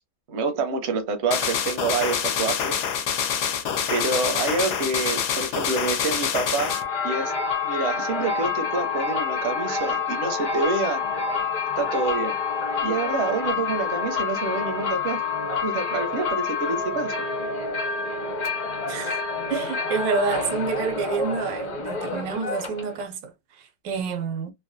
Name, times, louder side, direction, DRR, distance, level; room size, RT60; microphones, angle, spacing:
voice 1, 0.3-2.7 3.9-6.7 7.0-7.3 7.6-11.0 11.8-12.4 12.8-15.2 15.6-17.1, right 4 dB, 60° right, 0.7 m, -27 dB
sound 1, 1.3-6.8, left 8 dB, 70° left, 1.1 m, -26 dB
sound 2, 6.6-23.0, left 5 dB, 55° left, 1.2 m, -28 dB
voice 2, 18.9-19.2 19.5-24.5, right 5 dB, 85° right, 1.4 m, -28 dB
3.3 x 2.2 x 2.5 m
omnidirectional pair, 1.9 m